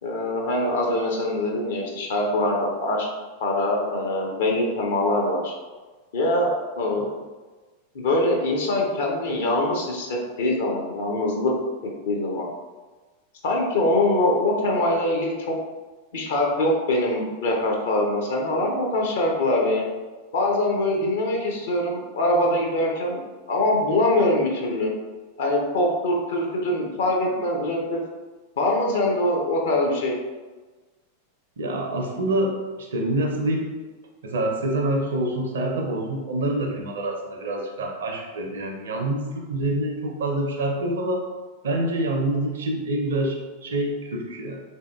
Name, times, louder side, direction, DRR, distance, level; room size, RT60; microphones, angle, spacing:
voice 1, 0.0-3.1 3.4-5.5 6.1-7.1 7.9-11.5 12.1-12.5 13.4-15.5 16.1-19.8 20.3-23.2 23.5-24.9 25.4-28.0 28.6-30.2, left 1 dB, 60° left, -1 dB, 0.6 m, -23 dB
voice 2, 31.6-33.7 34.2-41.2 41.6-44.6, right 1 dB, 65° right, 1 dB, 0.6 m, -26 dB
3.6 x 2.7 x 2.3 m, 1.3 s
figure-of-eight pair, 90°, 0 cm